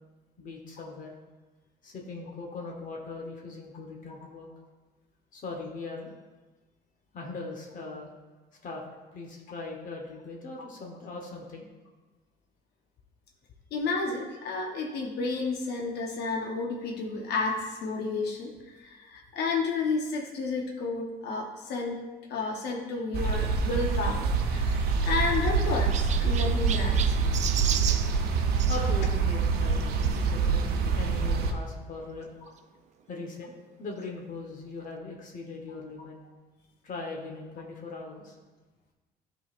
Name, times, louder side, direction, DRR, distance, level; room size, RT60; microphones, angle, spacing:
voice 1, 0.4-1.1 1.8-4.5 5.3-6.1 7.1-8.1 8.6-8.8 9.1-11.7 28.7-32.3 33.1-36.2 36.8-38.3, left 3 dB, 50° left, 0 dB, 1.1 m, -40 dB
voice 2, 13.7-22.0 22.3-27.2, left 3 dB, 75° left, 0 dB, 1.0 m, -31 dB
sound 1, 23.1-31.5, right 5 dB, 70° right, 0.8 m, -26 dB
Chirp tweet, 24.5-28.8 30.0-30.2 30.9-31.0 31.2-31.3 32.6-32.7, right 8 dB, 45° right, 0.4 m, -35 dB
12.0 x 4.0 x 2.5 m, 1.3 s
cardioid pair, 110°, 17 cm